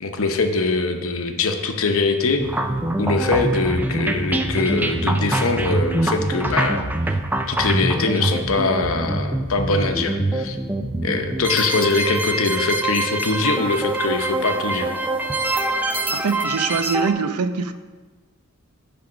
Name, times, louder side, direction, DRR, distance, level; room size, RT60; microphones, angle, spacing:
voice 1, 0.0-2.5 3.0-7.2 7.5-10.6 11.0-14.9, left 3 dB, 65° left, 5 dB, 0.8 m, -22 dB
sound 1, 2.4-17.1, right 2 dB, 10° right, 0.4 m, -24 dB
voice 2, 16.1-17.7, right 5 dB, 90° right, 10 dB, 0.6 m, -23 dB
10.5 x 3.5 x 6.2 m, 1.3 s
head